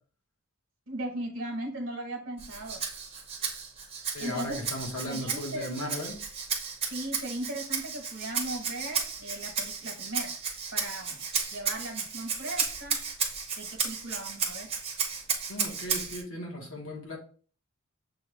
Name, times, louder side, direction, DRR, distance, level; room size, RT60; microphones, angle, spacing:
voice 1, 0.9-2.8 4.2-4.7 5.1-5.9 6.9-10.3 10.7-11.2 11.5-13.0 13.6-14.7, right 1 dB, 60° right, 2 dB, 1.0 m, -37 dB
Rattle (instrument), 2.4-16.2, right 6 dB, 25° right, 0.7 m, -33 dB
voice 2, 4.1-6.2 15.5-17.2, left 1 dB, 65° left, 0 dB, 1.3 m, -36 dB
6.9 x 2.3 x 3.2 m, 0.42 s
head